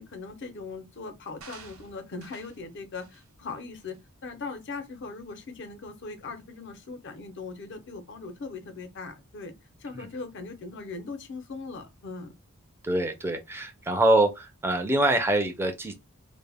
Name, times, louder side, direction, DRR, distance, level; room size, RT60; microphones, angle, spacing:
voice 1, 0.0-9.5 9.8-12.3, left 4 dB, 55° left, 0.5 m, -40 dB
sound 1, 1.4-2.6 3.0-3.3 3.8-4.0, right 5 dB, 75° right, 0.8 m, -50 dB
voice 2, 12.8-15.9, right 1 dB, 10° right, 0.3 m, -24 dB
2.0 x 2.0 x 3.3 m
head